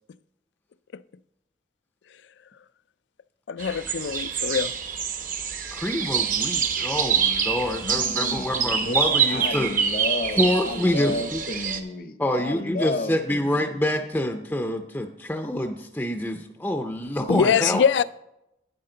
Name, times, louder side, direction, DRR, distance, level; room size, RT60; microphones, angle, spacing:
voice 1, 3.5-4.7 17.3-18.0, left 7 dB, 75° left, 0.4 m, -23 dB
sound 1, 3.6-11.8, right 7 dB, 45° right, 0.9 m, -26 dB
voice 2, 5.7-9.7 10.4-11.4 12.2-17.8, left 1 dB, 10° left, 0.5 m, -26 dB
voice 3, 7.8-13.8, left 2 dB, 50° left, 0.7 m, -32 dB
12.0 x 9.5 x 3.9 m
head